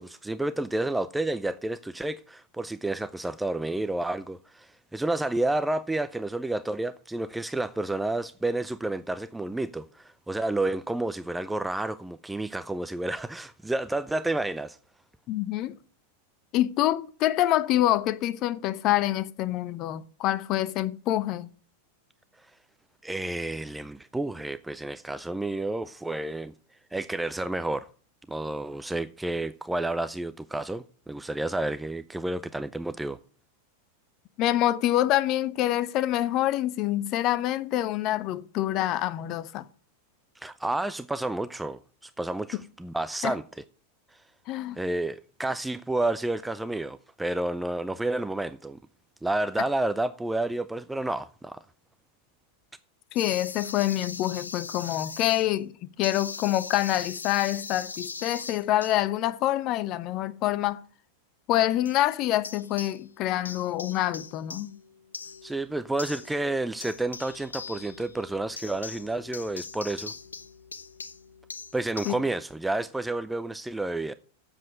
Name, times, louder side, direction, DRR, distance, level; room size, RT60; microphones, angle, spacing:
voice 1, 0.0-14.8 23.0-26.5 26.9-27.9 28.3-33.2 40.4-43.4 44.1-44.2 44.8-48.8 49.2-51.6 65.4-70.1 71.7-74.1, right 2 dB, 5° right, 0.4 m, -30 dB
voice 2, 15.3-15.8 16.5-21.5 34.4-39.7 43.2-43.3 44.5-44.8 53.1-55.7 56.0-60.8 61.5-64.7 72.0-72.1, left 14 dB, 40° left, 0.7 m, -26 dB
sound 1, 53.2-55.5 56.0-58.9 61.9-62.1 62.4-63.2 63.4-72.1, left 4 dB, 75° left, 0.7 m, -41 dB
7.6 x 7.4 x 7.9 m
figure-of-eight pair, 90°, 0 cm